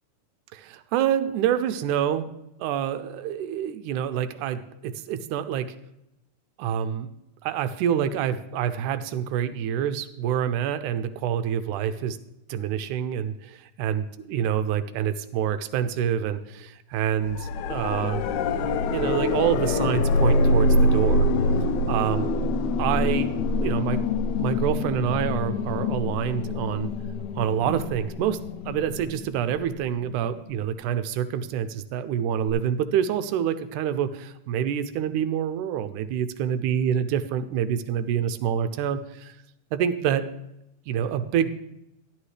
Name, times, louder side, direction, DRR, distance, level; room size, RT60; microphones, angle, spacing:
voice 1, 0.5-2.3 2.6-5.8 6.6-7.1 7.4-12.2 12.5-18.2 18.9-21.3 21.9-22.3 22.8-23.3 23.6-24.0 24.4-26.9 27.4-39.4 39.7-40.3 40.9-41.5, right 9 dB, 80° right, 11 dB, 1.9 m, -27 dB
sound 1, 17.3-30.1 32.5-32.6, left 2 dB, 80° left, 1.7 m, -25 dB
13.0 x 11.5 x 3.3 m, 0.86 s
omnidirectional pair, 3.9 m